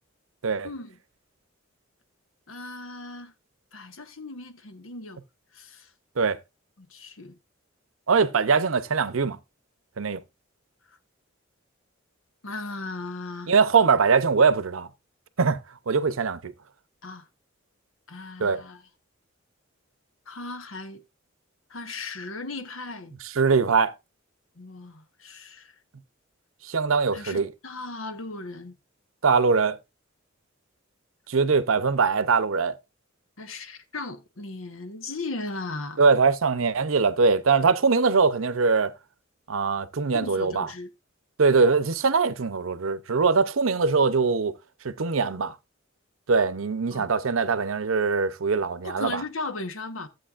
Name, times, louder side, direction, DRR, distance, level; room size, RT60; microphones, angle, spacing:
voice 1, 0.6-1.0 2.5-3.3 3.7-5.2 5.5-5.9 6.8-7.3 12.4-13.5 17.0-17.3 18.1-18.8 20.3-21.0 21.7-23.1 24.6-25.7 27.1-28.7 33.4-36.0 40.1-40.9 46.9-47.1 48.8-50.1, left 3 dB, 80° left, 1.2 m, -37 dB
voice 2, 8.1-9.4 10.0-10.2 13.5-14.9 15.4-15.6 15.9-16.5 18.4-18.6 23.2-23.9 26.6-27.5 29.2-29.8 31.3-32.7 36.0-38.9 39.5-40.7 41.4-44.6 44.8-45.6 46.3-49.2, right 4 dB, 80° right, 0.7 m, -22 dB
14.0 x 7.9 x 2.5 m
head